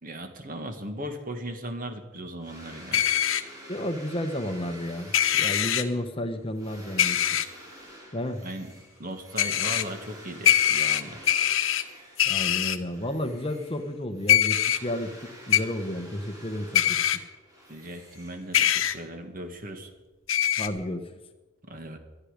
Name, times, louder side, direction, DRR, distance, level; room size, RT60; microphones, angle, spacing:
voice 1, 0.0-3.0 8.4-8.7 9.0-11.3 17.7-19.9 21.7-22.0, right 1 dB, 40° right, 6 dB, 1.9 m, -37 dB
sound 1, 2.4-12.5 12.8-18.8, equal, 15° right, 4.5 m, -48 dB
sound 2, 2.9-3.4 5.1-5.8 7.0-7.4 9.4-9.8 10.4-11.8 12.2-12.8 14.3-14.8 15.5-15.6 16.7-17.2 18.5-18.9 20.3-20.7, left 11 dB, 65° left, 1.1 m, -22 dB
voice 2, 3.7-7.2 8.1-8.4 12.3-17.0 20.6-21.0, left 1 dB, 25° left, 8 dB, 0.9 m, -32 dB
20.5 x 13.0 x 5.1 m, 1.2 s
head